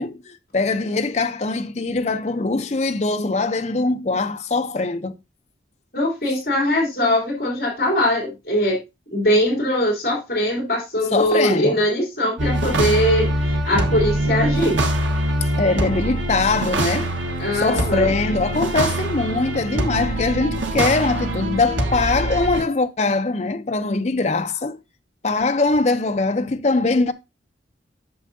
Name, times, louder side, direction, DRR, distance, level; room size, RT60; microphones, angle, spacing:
voice 1, 0.0-5.1 11.1-11.8 15.6-17.1 17.5-24.8 25.2-27.1, left 3 dB, 35° left, 0.5 m, -22 dB
voice 2, 5.9-8.8 9.1-14.8 17.4-18.1, equal, 55° left, 3.0 m, -21 dB
sound 1, 12.4-22.6, right 1 dB, 85° right, 1.2 m, -23 dB
8.6 x 6.5 x 2.6 m
head